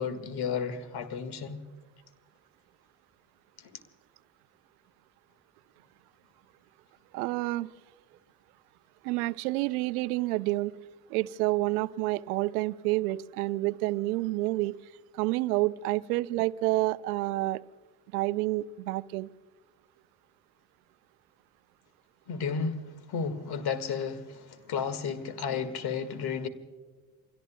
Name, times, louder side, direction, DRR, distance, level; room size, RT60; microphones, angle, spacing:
voice 1, 0.0-1.6 3.7-3.8 22.3-26.5, left 6 dB, 50° left, 2.0 m, -33 dB
voice 2, 7.1-7.7 9.0-10.8 11.1-14.7 15.1-17.6 18.1-19.3, right 19 dB, 65° right, 0.6 m, -29 dB
29.0 x 22.0 x 2.3 m
figure-of-eight pair, 50°, 48 cm